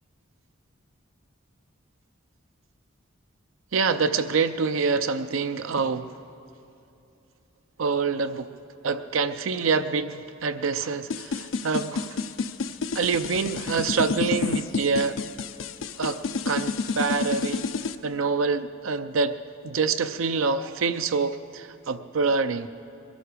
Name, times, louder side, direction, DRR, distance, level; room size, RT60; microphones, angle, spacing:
voice 1, 3.7-6.1 7.8-8.5 8.8-12.2 12.9-15.2 16.0-17.6 18.0-19.4 19.6-22.7, right 4 dB, 85° right, 0.6 m, -26 dB
sound 1, 11.1-17.9, left 4 dB, 75° left, 0.5 m, -29 dB
21.5 x 13.0 x 5.0 m
head